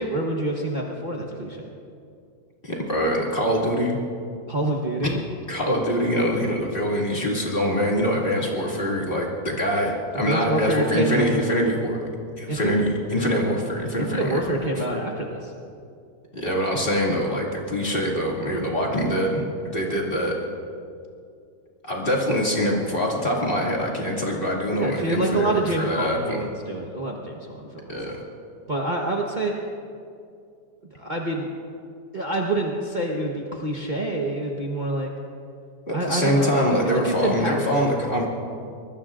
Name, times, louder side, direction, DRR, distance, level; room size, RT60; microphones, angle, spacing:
voice 1, 0.0-1.7 4.5-5.2 10.1-11.4 12.5-12.7 14.1-15.5 24.8-28.3 28.7-29.5 31.0-31.5 32.1-35.1 35.9-37.5, right 2 dB, 30° right, -1 dB, 1.2 m, -27 dB
voice 2, 2.6-4.0 5.5-12.0 12.4-15.0 16.3-20.4 21.8-26.4 27.9-28.2 35.9-38.3, equal, 35° left, -3 dB, 2.6 m, -24 dB
24.5 x 20.5 x 2.5 m, 2.4 s
omnidirectional pair, 1.7 m